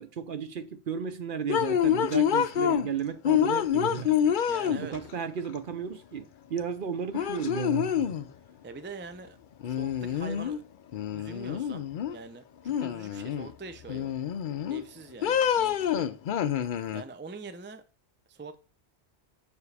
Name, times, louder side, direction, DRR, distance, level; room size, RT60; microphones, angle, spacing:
voice 1, 0.0-4.4 4.7-8.2, right 7 dB, 55° right, 0.8 m, -34 dB
sound 1, 1.5-2.9 3.2-5.1 6.6-6.7 7.1-8.3 9.6-10.6 10.9-12.2 12.6-13.5 13.9-14.8 15.2-17.0, left 9 dB, 60° left, 0.6 m, -27 dB
voice 2, 4.5-5.1 8.6-9.4 9.6-10.7 11.1-14.2 14.7-16.1 16.9-17.8 18.3-18.6, right 4 dB, 15° right, 0.4 m, -44 dB
7.1 x 6.8 x 3.3 m
omnidirectional pair, 1.2 m